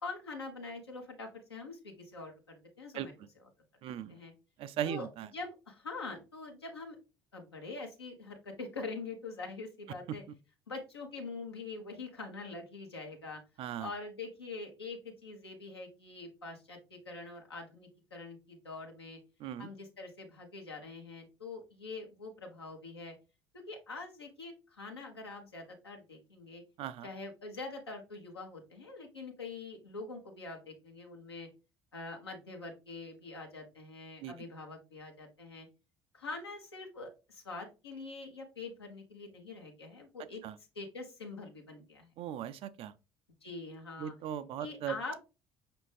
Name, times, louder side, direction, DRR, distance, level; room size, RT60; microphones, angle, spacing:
voice 1, 0.0-3.1 4.1-4.3 4.9-5.1 5.3-7.0 7.3-10.2 10.7-13.4 13.8-19.2 19.6-23.1 23.5-26.6 27.0-31.5 31.9-35.7 36.1-40.4 40.7-42.1 43.4-44.1 44.6-45.2, left 3 dB, 85° left, 0.8 m, -44 dB
voice 2, 3.8-4.1 4.6-5.3 13.6-13.9 19.4-19.7 26.8-27.1 34.2-34.3 40.4-40.6 42.2-42.9 44.0-45.2, right 10 dB, 45° right, 0.3 m, -38 dB
5.4 x 2.5 x 3.2 m
figure-of-eight pair, 55°, 13 cm